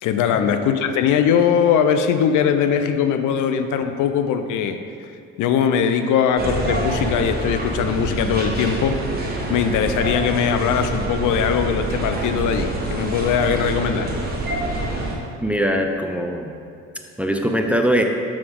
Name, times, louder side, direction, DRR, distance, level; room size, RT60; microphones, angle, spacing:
voice 1, 0.0-4.8 5.4-9.0 9.5-14.1, left 7 dB, 80° left, 8 dB, 0.5 m, -20 dB
sound 1, 6.4-15.2, right 1 dB, 30° right, 1.2 m, -26 dB
voice 2, 15.4-16.5 17.2-18.0, equal, 5° right, 3 dB, 0.4 m, -21 dB
6.0 x 4.9 x 3.6 m, 2.4 s
cardioid pair, 90°, 30 cm